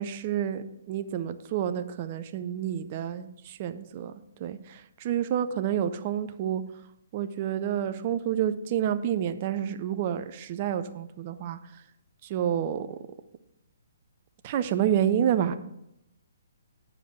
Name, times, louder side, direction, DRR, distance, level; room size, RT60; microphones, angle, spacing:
voice 1, 0.0-4.1 4.4-6.6 7.1-11.6 12.2-12.9 14.4-15.6, right 9 dB, 35° right, 10 dB, 0.6 m, -29 dB
9.1 x 5.0 x 7.8 m, 0.83 s
figure-of-eight pair, 130°, 0 cm